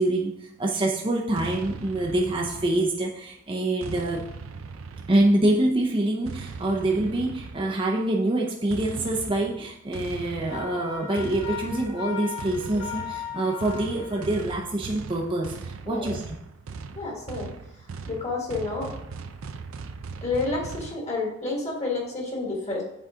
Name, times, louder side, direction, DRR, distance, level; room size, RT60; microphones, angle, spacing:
voice 1, 0.0-4.3 5.1-16.4, right 1 dB, 25° right, -1 dB, 0.6 m, -26 dB
sound 1, 1.4-3.1 3.8-5.5 6.3-7.9 8.7-21.0, right 4 dB, 90° right, 0.5 m, -39 dB
Wind instrument woodwind instrument, 10.5-14.4, left 7 dB, 80° left, 2.1 m, -37 dB
voice 2, 15.8-16.2 16.9-17.5 18.1-18.9 20.2-22.8, left 3 dB, 35° left, -2 dB, 1.7 m, -29 dB
7.5 x 4.0 x 3.7 m, 0.80 s
head